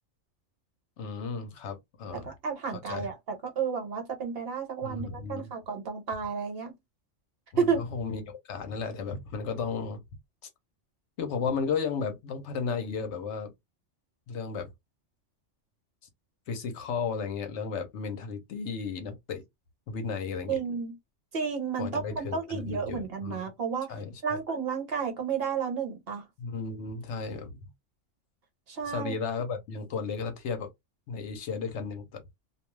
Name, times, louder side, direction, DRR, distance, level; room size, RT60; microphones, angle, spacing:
voice 1, 1.0-2.3 2.7-3.1 4.8-5.5 7.5-10.0 11.2-13.5 14.3-14.7 16.5-19.4 19.9-20.6 21.8-23.4 23.9-24.4 26.4-27.5 28.9-30.7 31.1-32.2, left 5 dB, 70° left, 0.9 m, -34 dB
voice 2, 2.1-6.7 7.6-7.8 20.5-20.9 21.3-23.9 24.2-26.2 28.7-29.1, right 6 dB, 55° right, 0.9 m, -31 dB
2.4 x 2.3 x 3.0 m
omnidirectional pair, 1.3 m